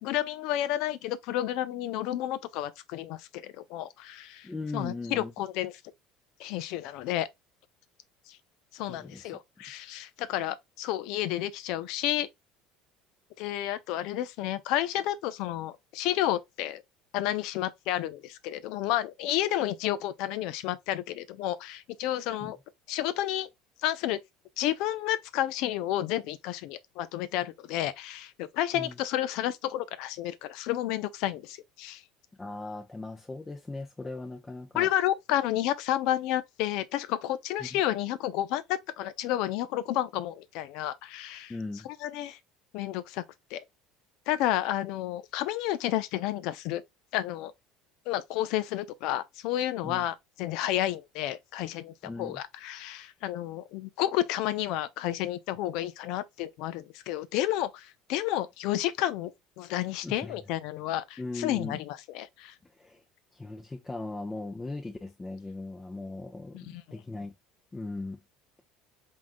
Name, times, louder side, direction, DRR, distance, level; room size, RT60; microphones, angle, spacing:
voice 1, 0.0-5.7 6.4-7.3 8.3-8.4 8.7-12.3 13.4-16.8 17.1-22.6 22.9-23.5 23.8-24.2 24.6-32.0 34.7-41.5 42.0-42.4 42.7-43.2 43.5-43.6 44.3-46.8 47.1-47.5 48.1-59.3 59.6-62.5 66.5-67.0, left 13 dB, 70° left, 0.5 m, -31 dB
voice 2, 4.4-5.3 8.9-9.3 22.4-22.5 28.7-29.0 32.4-34.9 37.6-37.7 41.5-41.9 49.8-50.1 52.0-52.4 60.0-60.4 61.2-61.8 62.8-63.0 63.3-67.3 67.7-68.2, left 2 dB, 15° left, 0.6 m, -38 dB
3.7 x 3.7 x 2.5 m
cardioid pair, 125°, 0 cm